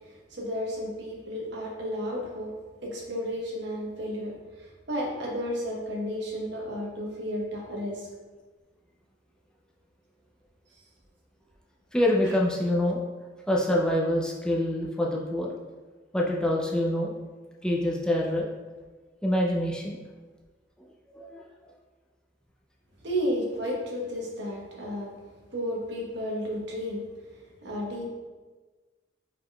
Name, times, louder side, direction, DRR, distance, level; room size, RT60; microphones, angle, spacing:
voice 1, 0.1-2.5 2.8-8.1 23.0-25.1 25.5-27.0 27.6-28.1, equal, 65° right, -2 dB, 0.9 m, -32 dB
voice 2, 11.9-13.0 13.5-15.5 16.1-17.1 17.6-18.5 19.2-20.0 21.1-21.4, left 1 dB, 5° left, -3 dB, 0.4 m, -26 dB
4.8 x 3.8 x 2.2 m, 1.3 s
head